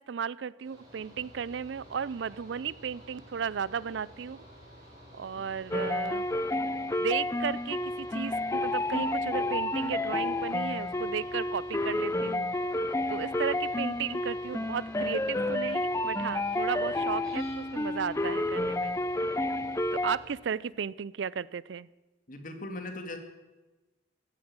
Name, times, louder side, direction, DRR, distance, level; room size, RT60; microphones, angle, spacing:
voice 1, 0.0-4.4 5.1-6.3 7.0-12.5 13.1-19.0 19.9-21.9, right 7 dB, 65° right, 21 dB, 0.4 m, -35 dB
Mechanical fan, 0.6-20.3, equal, 20° right, 5.5 m, -52 dB
sound 1, 5.7-20.2, left 1 dB, 15° left, 0.6 m, -30 dB
voice 2, 22.3-23.2, left 2 dB, 45° left, 6 dB, 2.1 m, -39 dB
16.0 x 9.8 x 8.7 m, 1.1 s
head